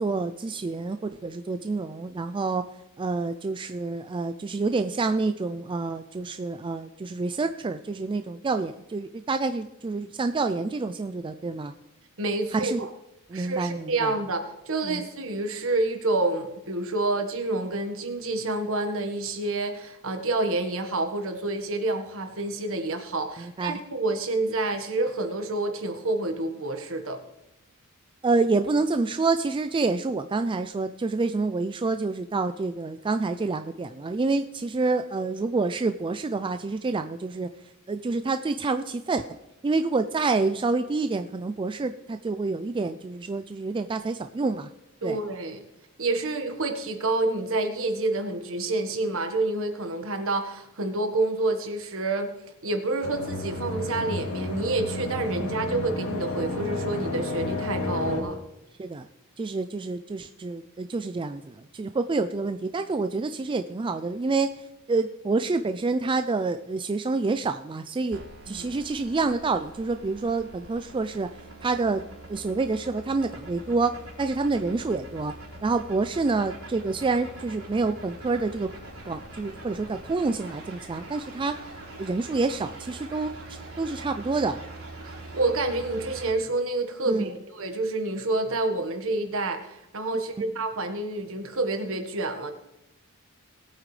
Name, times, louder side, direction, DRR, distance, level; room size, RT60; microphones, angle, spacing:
voice 1, 0.0-2.6 3.0-11.7 12.5-12.9 13.3-14.1 14.8-15.1 23.4-23.8 28.2-37.5 37.9-39.3 39.6-44.7 45.0-45.2 55.4-55.6 58.8-59.1 59.4-71.3 71.6-75.3 75.6-78.7 79.1-81.5 82.0-83.3 83.8-84.6 87.1-87.3 90.4-90.5, right 3 dB, 20° right, 9 dB, 0.3 m, -28 dB
voice 2, 12.2-12.9 13.3-27.2 45.0-45.6 46.0-52.3 52.6-58.4 68.5-68.7 85.1-92.5, right 2 dB, 65° right, 6 dB, 1.5 m, -28 dB
sound 1, 53.0-58.2, left 2 dB, 75° left, 2.1 m, -31 dB
sound 2, 68.1-86.3, right 1 dB, 80° right, 3.6 m, -43 dB
19.0 x 8.8 x 3.3 m, 0.93 s
head